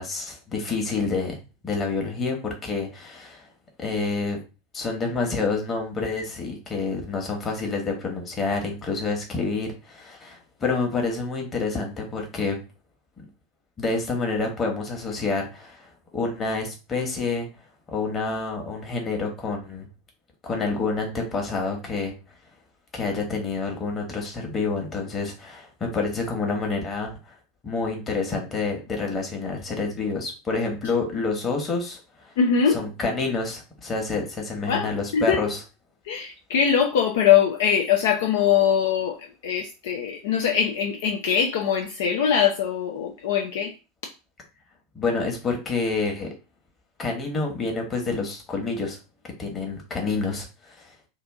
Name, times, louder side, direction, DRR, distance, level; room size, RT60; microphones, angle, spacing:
voice 1, 0.0-1.4 1.6-3.5 3.8-4.4 4.7-12.6 13.2-13.3 13.8-17.5 17.9-19.9 20.4-22.1 22.9-27.3 27.6-32.0 32.3-32.4 32.7-35.6 44.9-46.3 47.0-49.0 49.4-50.9, left 3 dB, 25° left, 1.2 m, -28 dB
voice 2, 32.4-32.8 34.7-35.4 36.1-39.2 39.4-43.7, left 8 dB, 60° left, 0.5 m, -22 dB
2.8 x 2.5 x 3.6 m
figure-of-eight pair, 80°, 0 cm